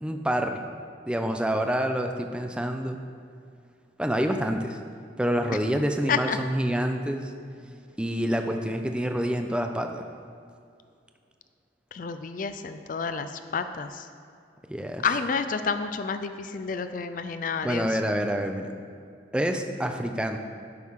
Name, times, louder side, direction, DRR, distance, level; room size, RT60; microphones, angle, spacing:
voice 1, 0.0-0.6 1.1-3.0 4.0-4.8 5.2-7.3 8.0-10.1 14.7-15.1 17.6-18.7 19.3-20.4, equal, 5° right, 5 dB, 0.5 m, -27 dB
voice 2, 11.9-14.1 15.0-17.9, left 5 dB, 45° left, 9 dB, 0.4 m, -29 dB
13.5 x 6.3 x 3.6 m, 2.3 s
head